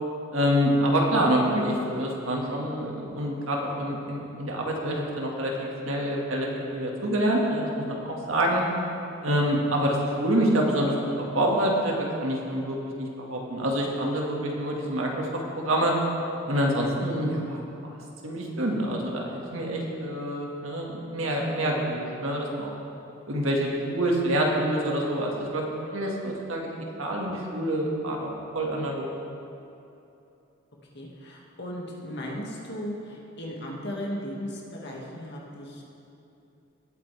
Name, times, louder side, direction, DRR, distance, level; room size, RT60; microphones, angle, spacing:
voice 1, 0.3-8.6 9.2-11.9 12.2-15.3 15.6-15.9 16.5-18.0 18.2-22.7 23.3-25.6 25.9-26.7 27.0-28.3 28.5-29.1, right 1 dB, 70° right, -1 dB, 1.8 m, -26 dB
voice 2, 30.9-35.8, equal, 55° left, -3 dB, 2.0 m, -36 dB
19.0 x 8.8 x 3.4 m, 2.7 s
head